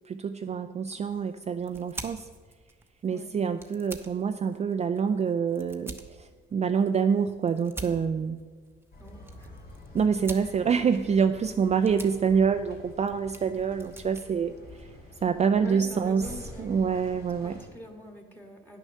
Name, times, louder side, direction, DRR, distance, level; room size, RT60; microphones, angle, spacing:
voice 1, 0.1-2.3 3.0-8.4 9.9-14.9 15.2-16.3 16.6-17.6, right 6 dB, 35° right, 7 dB, 0.4 m, -26 dB
sound 1, 0.9-15.4, right 2 dB, 10° right, 0.9 m, -47 dB
sound 2, 8.9-17.7, left 2 dB, 55° left, 3.4 m, -48 dB
voice 2, 9.0-9.6 15.6-18.8, equal, 10° left, 2 dB, 1.7 m, -45 dB
9.8 x 6.4 x 6.4 m, 1.5 s
cardioid pair, 90°, 20 cm